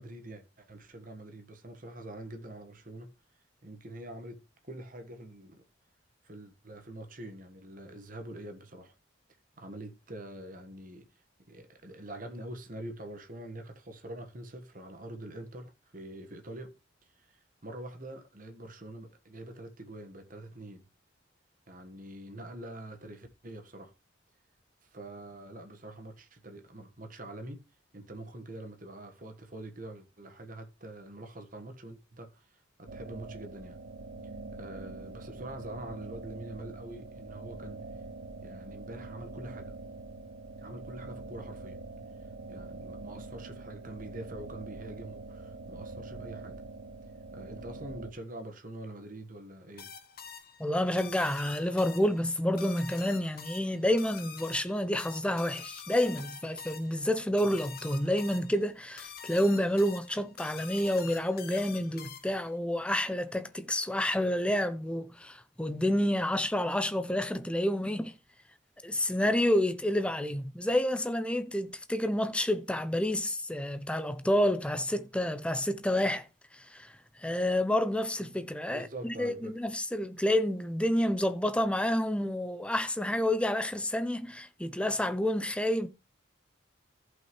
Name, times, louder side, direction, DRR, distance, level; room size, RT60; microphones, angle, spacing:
voice 1, 0.0-3.1 3.6-5.6 6.2-8.9 9.6-11.1 11.5-16.7 17.0-20.9 21.7-23.9 24.8-27.6 27.9-33.8 34.5-37.9 38.4-39.7 40.6-41.8 42.5-46.7 47.3-49.9 78.7-79.5, right 1 dB, 45° right, 1.5 m, -45 dB
sound 1, 32.9-48.1, right 3 dB, 70° right, 1.2 m, -44 dB
sound 2, 49.8-62.5, left 7 dB, 50° left, 1.2 m, -47 dB
voice 2, 50.6-68.1 68.8-76.3 76.5-76.9 77.2-85.9, left 1 dB, 5° left, 0.6 m, -29 dB
14.5 x 5.7 x 3.2 m
head